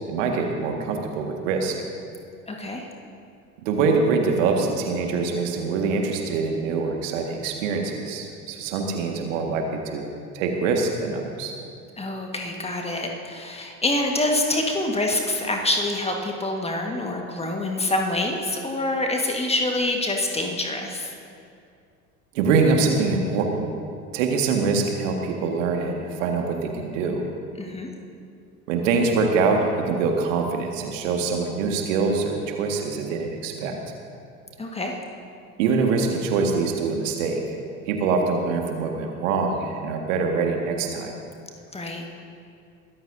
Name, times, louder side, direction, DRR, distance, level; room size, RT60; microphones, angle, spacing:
voice 1, 0.1-1.8 3.7-10.1 10.3-11.5 22.3-23.7 24.1-27.3 28.7-33.8 35.6-37.6 37.9-41.1, right 4 dB, 55° right, 2 dB, 1.9 m, -24 dB
voice 2, 2.5-2.9 12.0-21.1 27.6-27.9 34.6-35.0 41.7-42.0, left 2 dB, 15° left, 2 dB, 1.6 m, -26 dB
22.5 x 14.0 x 2.7 m, 2.4 s
figure-of-eight pair, 75°, 44 cm